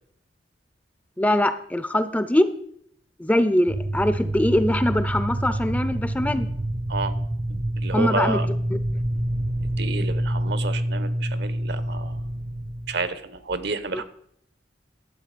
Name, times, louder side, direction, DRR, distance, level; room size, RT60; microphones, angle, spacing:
voice 1, 1.2-2.5 3.2-6.5 7.9-8.4 13.9-14.0, left 1 dB, 10° left, 12 dB, 0.5 m, -22 dB
sound 1, 3.7-13.1, right 1 dB, 40° right, 0.7 m, -27 dB
voice 2, 7.5-8.5 9.8-12.2 12.9-14.0, right 3 dB, 65° right, 13 dB, 1.0 m, -30 dB
12.0 x 7.9 x 5.1 m, 0.68 s
head